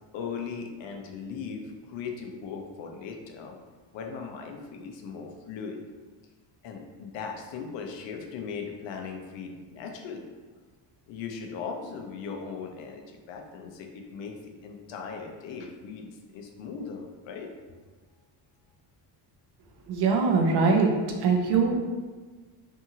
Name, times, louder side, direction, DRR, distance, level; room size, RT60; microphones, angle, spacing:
voice 1, 0.1-3.6 3.9-5.8 6.6-10.2 11.1-17.5, left 5 dB, 70° left, 3 dB, 0.5 m, -38 dB
voice 2, 19.9-20.9 21.2-21.7, right 4 dB, 60° right, 1 dB, 0.5 m, -22 dB
2.7 x 2.5 x 2.7 m, 1.4 s
cardioid pair, 175°, 47 cm